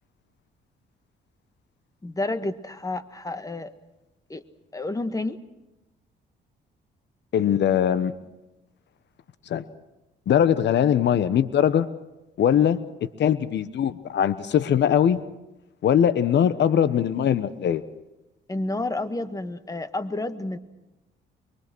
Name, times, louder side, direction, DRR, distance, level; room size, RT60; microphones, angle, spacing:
voice 1, 2.0-3.7 4.3-4.4 4.7-5.4 18.5-20.6, left 2 dB, 15° left, 11 dB, 1.7 m, -30 dB
voice 2, 7.3-8.1 9.5-9.6 10.3-11.9 12.4-12.8 13.2-15.2 15.8-17.8, left 9 dB, 65° left, 14 dB, 1.2 m, -21 dB
23.5 x 23.0 x 6.2 m, 1.0 s
cardioid pair, 90°, 20 cm